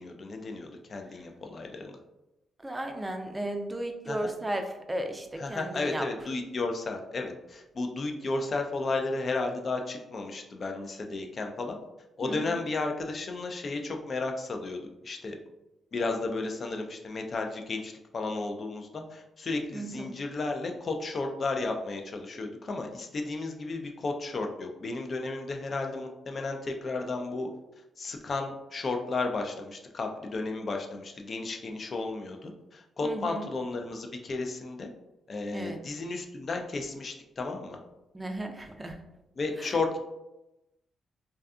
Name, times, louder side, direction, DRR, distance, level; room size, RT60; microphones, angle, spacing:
voice 1, 0.0-2.0 4.1-4.2 5.4-11.8 12.2-15.4 15.9-27.5 28.0-34.9 35.3-37.8 39.4-40.0, left 3 dB, 50° left, 3 dB, 0.4 m, -33 dB
voice 2, 2.6-6.1 12.2-12.6 19.7-20.1 33.0-33.5 35.5-35.8 38.1-39.0 39.6-39.8, right 1 dB, 20° right, 5 dB, 0.4 m, -35 dB
2.6 x 2.3 x 2.4 m, 0.95 s
supercardioid pair, 60°, 0 cm